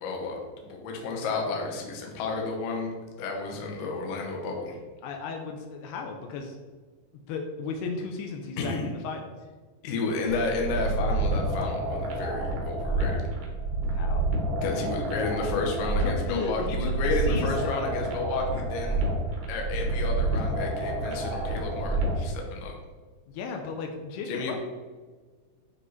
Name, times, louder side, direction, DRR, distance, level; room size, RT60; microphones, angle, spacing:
voice 1, 0.0-2.9 3.2-4.8 8.6-8.9 9.8-13.3 14.6-19.0 19.5-22.8 24.3-24.6, left 3 dB, 65° left, 1 dB, 2.4 m, -31 dB
voice 2, 5.0-6.6 7.3-9.3 13.9-14.3 15.9-17.7 23.3-24.6, left 4 dB, 85° left, 3 dB, 2.6 m, -35 dB
sound 1, 10.3-22.3, right 2 dB, 85° right, 1.3 m, -29 dB
9.7 x 3.7 x 4.0 m, 1.4 s
omnidirectional pair, 4.6 m